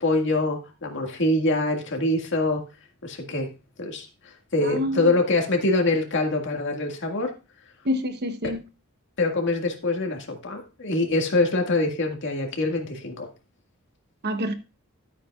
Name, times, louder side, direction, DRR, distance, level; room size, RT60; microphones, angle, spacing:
voice 1, 0.0-2.6 3.0-3.5 3.8-7.3 9.2-13.3, left 2 dB, 55° left, 2.0 m, -24 dB
voice 2, 4.6-5.1 7.8-8.6 14.2-14.5, left 1 dB, 50° right, 1.0 m, -27 dB
12.5 x 8.7 x 2.4 m
head